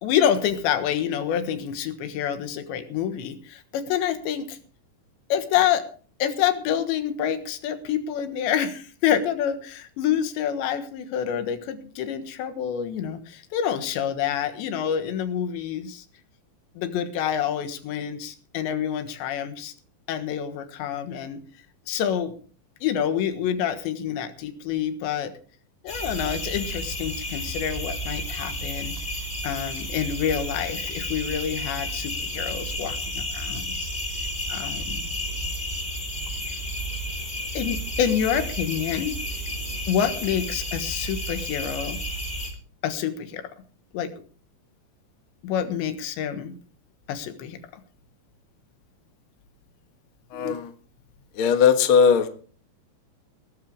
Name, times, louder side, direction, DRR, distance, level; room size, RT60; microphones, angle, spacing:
voice 1, 0.0-4.6 5.3-5.9 6.2-16.1 16.8-19.7 20.1-21.4 21.9-22.3 22.8-25.3 25.8-28.9 29.4-33.9 34.5-35.1 36.5-36.6 37.5-39.2 39.9-42.0 42.8-43.5 43.9-44.1 45.4-46.6 47.1-47.8, left 9 dB, 90° left, 9 dB, 3.7 m, -27 dB
sound 1, 25.9-42.5, equal, 15° left, 2.9 m, -32 dB
voice 2, 50.3-50.7 51.4-52.3, left 7 dB, 70° left, 8 dB, 1.2 m, -18 dB
17.5 x 14.0 x 3.5 m, 0.40 s
omnidirectional pair, 5.0 m